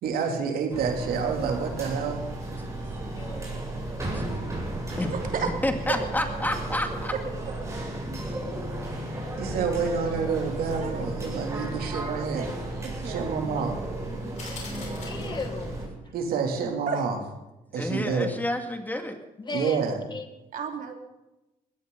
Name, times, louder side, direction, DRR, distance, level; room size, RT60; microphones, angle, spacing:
voice 1, 0.0-2.2 9.4-12.5 13.0-13.8 16.1-17.2 17.7-18.3 19.5-20.0, right 5 dB, 90° right, 3 dB, 2.9 m, -28 dB
sound 1, 0.7-15.9, right 1 dB, 20° right, 7.7 m, -34 dB
voice 2, 5.0-5.5 5.9-6.0 10.8-11.1 12.0-13.4 16.9-17.0 20.5-20.9, right 6 dB, 65° right, 3 dB, 3.0 m, -33 dB
voice 3, 5.6-7.1 17.8-19.2, left 1 dB, 10° left, 5 dB, 2.2 m, -30 dB
voice 4, 8.0-8.4 11.7-11.9 15.0-15.8 19.4-19.8 20.1-20.3, left 3 dB, 30° left, 7 dB, 1.9 m, -36 dB
sound 2, 14.4-15.8, left 4 dB, 50° left, 5.7 m, -43 dB
21.0 x 17.0 x 4.0 m, 0.98 s
cardioid pair, 110°, 15 cm